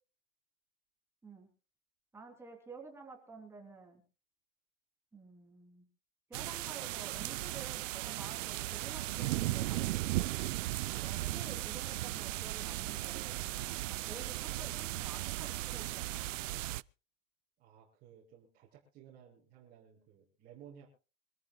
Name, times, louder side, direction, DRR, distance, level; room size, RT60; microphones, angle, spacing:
voice 1, 2.1-4.0 5.1-5.9 6.3-9.9 10.1-10.3 10.9-13.4 13.9-16.3, right 4 dB, 5° right, 2 dB, 3.2 m, -51 dB
sound 1, 6.3-16.8, right 17 dB, 85° right, 0.6 m, -36 dB
voice 2, 17.6-20.9, right 9 dB, 25° right, -4 dB, 6.1 m, -57 dB
25.5 x 14.5 x 2.3 m, 0.35 s
supercardioid pair, 170°, 37 cm